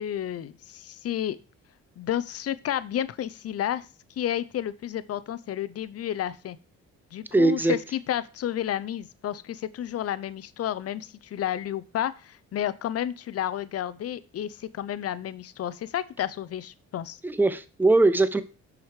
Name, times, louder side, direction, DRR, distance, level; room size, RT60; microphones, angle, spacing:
voice 1, 0.0-1.4 2.0-3.8 4.2-6.6 7.1-17.2, left 11 dB, 55° left, 16 dB, 0.6 m, -31 dB
voice 2, 7.3-7.7 17.2-18.4, right 2 dB, 5° right, 13 dB, 0.6 m, -21 dB
6.2 x 5.0 x 4.9 m, 0.34 s
cardioid pair, 90°, 30 cm